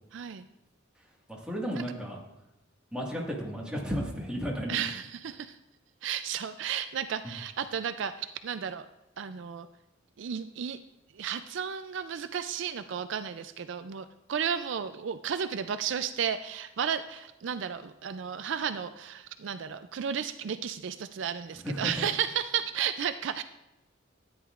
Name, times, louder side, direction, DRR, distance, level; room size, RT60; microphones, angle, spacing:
voice 1, 0.1-0.4 1.7-1.8 4.7-5.6 6.0-8.9 9.2-9.7 10.2-10.8 11.1-23.4, right 8 dB, 65° right, 10 dB, 0.4 m, -33 dB
voice 2, 1.3-2.2 2.9-4.8 21.6-22.1, equal, 5° right, -3 dB, 1.7 m, -33 dB
13.0 x 9.6 x 2.5 m, 0.93 s
head